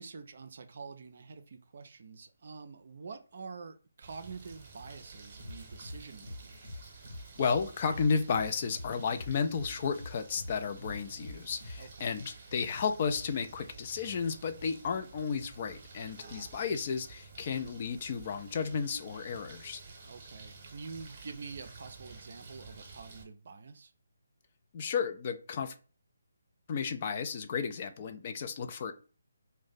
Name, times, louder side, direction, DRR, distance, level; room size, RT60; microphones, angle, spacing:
voice 1, 0.0-6.5 11.8-12.1 16.2-16.6 20.0-23.9, right 4 dB, 50° right, 0.4 m, -47 dB
sound 1, 4.0-23.2, right 4 dB, 35° right, 0.9 m, -51 dB
sound 2, 5.4-11.9, left 1 dB, 70° left, 1.0 m, -46 dB
voice 2, 7.4-19.8 24.7-25.7 26.7-28.9, left 5 dB, 40° left, 0.4 m, -33 dB
2.5 x 2.1 x 3.9 m
figure-of-eight pair, 145°, 0 cm